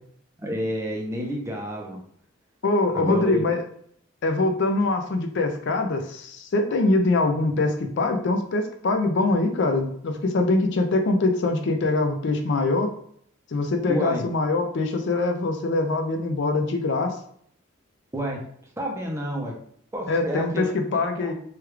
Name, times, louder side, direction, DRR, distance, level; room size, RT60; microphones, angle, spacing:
voice 1, 0.4-2.0 3.0-3.5 13.9-14.2 18.1-18.4 18.8-19.6 19.9-20.7 21.2-21.3, equal, 15° right, 0 dB, 0.5 m, -29 dB
voice 2, 2.6-3.6 4.2-12.9 13.5-17.2 20.1-21.3, left 2 dB, 60° left, 5 dB, 0.4 m, -23 dB
3.1 x 2.3 x 3.2 m, 0.64 s
head